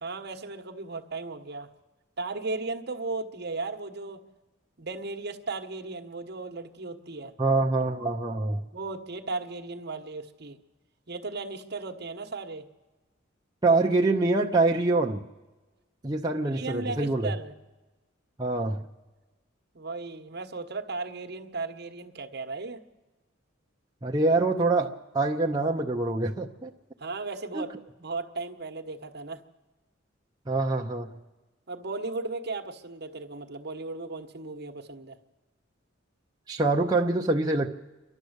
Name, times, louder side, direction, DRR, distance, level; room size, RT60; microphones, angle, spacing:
voice 1, 0.0-1.7 2.2-4.2 4.8-7.3 8.7-10.6 11.1-12.6 16.4-17.5 19.7-22.8 27.0-29.4 31.7-35.2, right 3 dB, 55° right, 5 dB, 1.2 m, -36 dB
voice 2, 7.4-8.6 13.6-15.2 16.0-17.3 18.4-18.9 24.0-26.7 27.5-27.6 30.5-31.2 36.5-37.7, right 2 dB, 20° right, 0 dB, 0.7 m, -25 dB
29.0 x 12.0 x 8.1 m, 1.2 s
head